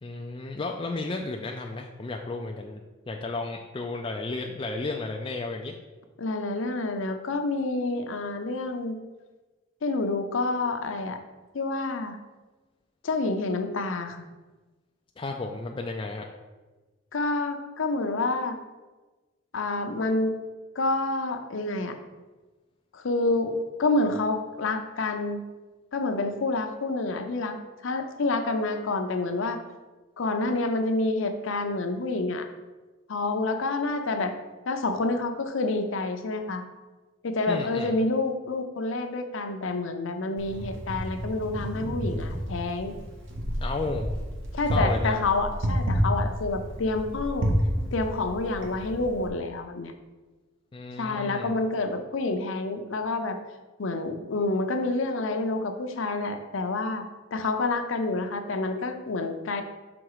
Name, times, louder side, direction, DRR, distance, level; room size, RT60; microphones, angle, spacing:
voice 1, 0.0-2.8 3.1-5.7 15.2-16.3 37.5-37.9 43.6-44.1 44.7-45.2 50.7-51.5, left 3 dB, 25° left, 2 dB, 0.3 m, -33 dB
voice 2, 6.2-9.0 9.8-11.2 11.5-12.2 13.0-14.2 17.1-18.6 19.5-20.3 20.8-22.0 22.9-25.4 25.9-27.6 27.8-29.6 30.2-32.5 33.1-34.3 34.7-36.6 37.2-42.9 44.5-47.5 47.9-49.9 51.0-53.4 53.8-57.0 57.3-59.6, left 2 dB, 75° left, 6 dB, 0.6 m, -28 dB
Wind, 40.4-49.3, equal, 70° right, 1.1 m, -30 dB
6.1 x 3.9 x 4.8 m, 1.2 s
head